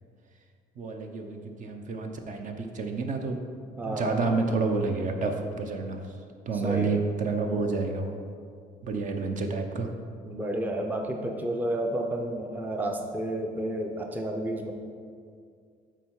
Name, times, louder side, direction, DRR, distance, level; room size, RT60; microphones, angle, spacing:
voice 1, 0.8-3.4 3.8-6.1 6.5-8.2 8.8-9.9, right 3 dB, 50° right, 4 dB, 0.8 m, -29 dB
voice 2, 3.8-4.2 6.6-7.0 10.3-14.7, right 1 dB, 10° right, 3 dB, 0.6 m, -31 dB
7.8 x 4.5 x 4.7 m, 2.2 s
cardioid pair, 110°, 17 cm